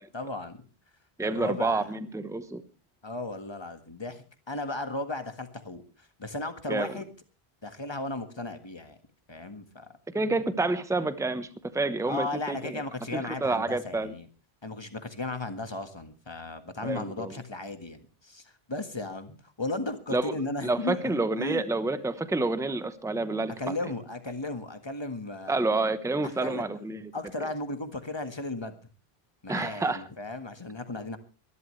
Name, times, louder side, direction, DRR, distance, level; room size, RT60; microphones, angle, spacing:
voice 1, 0.1-0.6 1.2-1.9 3.0-7.1 7.6-9.0 9.3-9.9 12.1-14.3 14.6-21.6 23.6-25.6 26.2-26.6 27.1-28.8 29.4-31.2, left 2 dB, 25° left, 8 dB, 1.7 m, -35 dB
voice 2, 1.2-2.6 6.7-6.9 10.1-11.5 11.7-12.8 13.1-14.1 16.8-17.4 20.1-20.3 20.6-23.9 25.5-27.0 29.5-30.0, right 3 dB, 5° right, 12 dB, 0.9 m, -29 dB
24.0 x 12.0 x 3.2 m, 0.32 s
omnidirectional pair, 1.1 m